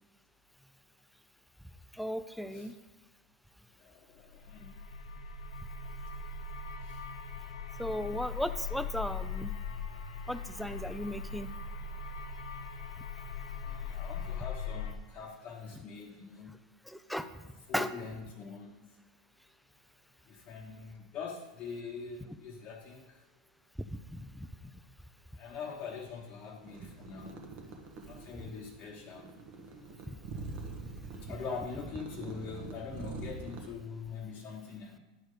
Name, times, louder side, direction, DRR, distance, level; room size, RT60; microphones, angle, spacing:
voice 1, 1.9-2.7 7.8-9.5 10.3-11.5 16.9-17.3 17.7-17.9 24.1-24.5 30.1-30.2, equal, ahead, 11 dB, 0.4 m, -36 dB
voice 2, 3.7-4.8 6.8-7.0 13.6-16.6 17.7-18.9 20.3-23.3 25.4-27.4 28.1-29.4 31.2-35.0, left 5 dB, 40° left, -1 dB, 1.0 m, -43 dB
sound 1, 4.3-14.9, left 5 dB, 85° left, 0.9 m, -40 dB
sound 2, 26.6-33.7, right 3 dB, 50° right, 1.3 m, -45 dB
10.5 x 4.4 x 4.9 m, 1.1 s
hypercardioid pair, 115°, 4 cm